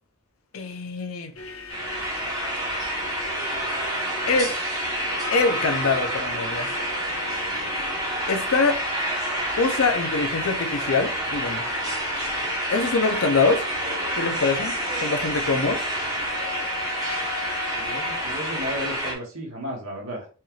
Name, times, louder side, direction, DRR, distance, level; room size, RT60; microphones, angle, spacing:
voice 1, 0.5-1.3 4.3-4.6 5.3-6.7 8.3-8.8 9.6-11.7 12.7-13.7 14.2-15.8, left 4 dB, 80° left, 0.6 m, -24 dB
sound 1, 1.3-19.0, left 4 dB, 65° left, 1.0 m, -39 dB
sound 2, 1.7-19.1, right 1 dB, 20° right, 1.1 m, -28 dB
voice 2, 17.7-20.3, equal, 85° right, 1.6 m, -34 dB
4.4 x 3.1 x 2.3 m
head